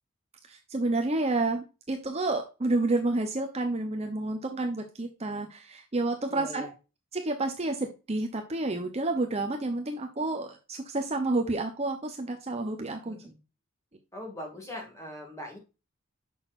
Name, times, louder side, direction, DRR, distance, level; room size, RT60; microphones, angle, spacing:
voice 1, 0.5-6.7 7.1-13.2, right 2 dB, 30° right, 4 dB, 0.7 m, -30 dB
voice 2, 6.3-6.7 12.9-13.4 14.1-15.6, left 1 dB, 15° left, 1 dB, 2.1 m, -41 dB
6.3 x 6.1 x 2.5 m, 0.30 s
head